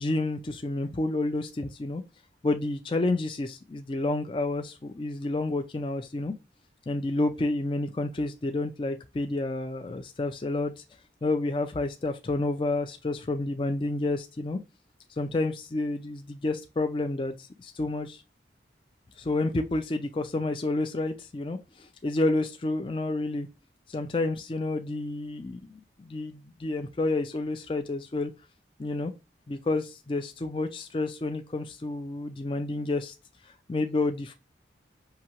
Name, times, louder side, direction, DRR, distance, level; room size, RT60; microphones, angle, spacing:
voice 1, 0.0-2.0 2.4-6.3 6.9-10.8 11.2-14.6 15.1-18.2 19.2-23.5 23.9-25.7 26.0-28.3 28.8-29.1 29.5-33.1 33.7-34.3, left 2 dB, 30° left, 0.4 m, -29 dB
5.7 x 2.8 x 2.9 m
head